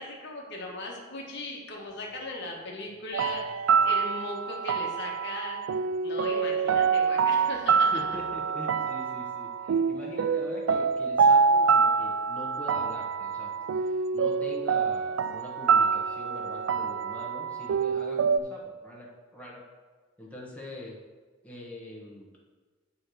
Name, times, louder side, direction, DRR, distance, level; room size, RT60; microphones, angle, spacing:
voice 1, 0.0-5.7 6.0-7.9, left 2 dB, 60° left, -2 dB, 1.5 m, -38 dB
sound 1, 3.1-18.4, right 5 dB, 80° right, 0.3 m, -26 dB
voice 2, 7.9-19.6 20.2-20.9 21.4-22.4, left 1 dB, 5° left, -4 dB, 1.3 m, -43 dB
9.5 x 3.3 x 6.3 m, 1.4 s
head